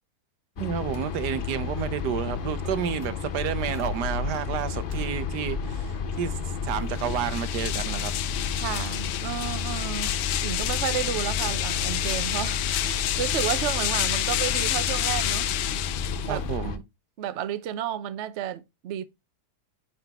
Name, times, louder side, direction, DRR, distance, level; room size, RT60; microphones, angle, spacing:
sound 1, 0.6-16.8, left 5 dB, 70° left, 0.5 m, -32 dB
voice 1, 0.6-5.9 6.2-8.1 16.3-16.8, right 9 dB, 80° right, 1.4 m, -30 dB
sound 2, 2.8-3.3 3.7-4.0 4.9-5.1 9.0-9.1 9.6-9.7 10.1-10.2, left 1 dB, 15° left, 0.7 m, -52 dB
sound 3, 6.9-16.6, left 13 dB, 85° left, 1.2 m, -29 dB
voice 2, 8.6-15.5 16.2-16.4 17.2-19.1, right 10 dB, 60° right, 0.8 m, -32 dB
9.2 x 4.0 x 3.4 m
omnidirectional pair, 1.8 m